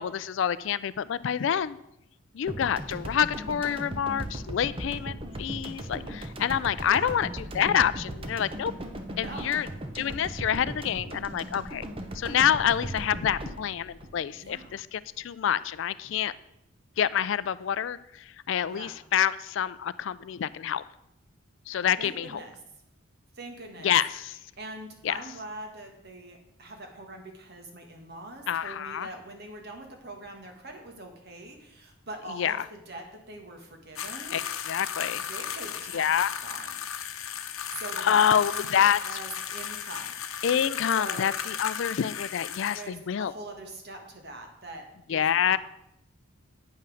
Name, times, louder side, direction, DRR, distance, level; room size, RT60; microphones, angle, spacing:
voice 1, 0.0-1.8 2.3-7.3 7.5-8.7 9.2-9.7 9.9-11.8 12.1-16.3 17.0-20.8 21.7-22.4 23.8-24.4 25.0-25.2 28.5-29.1 32.4-32.7 34.3-35.3 35.9-36.3 37.7-39.0 40.4-43.3 45.1-45.6, left 9 dB, 60° left, 17 dB, 0.3 m, -27 dB
sound 1, 2.5-14.9, right 1 dB, 25° right, 0.8 m, -38 dB
voice 2, 6.9-7.2 9.2-9.7 14.3-14.8 18.7-19.0 22.0-22.5 23.3-23.9 24.6-34.4 35.2-36.1 36.4-36.7 37.7-40.1 40.9-41.4 42.6-45.6, right 2 dB, 50° right, 3 dB, 1.6 m, -43 dB
sound 2, 34.0-42.9, left 8 dB, 80° left, 0.8 m, -35 dB
9.1 x 5.7 x 6.3 m, 0.82 s
head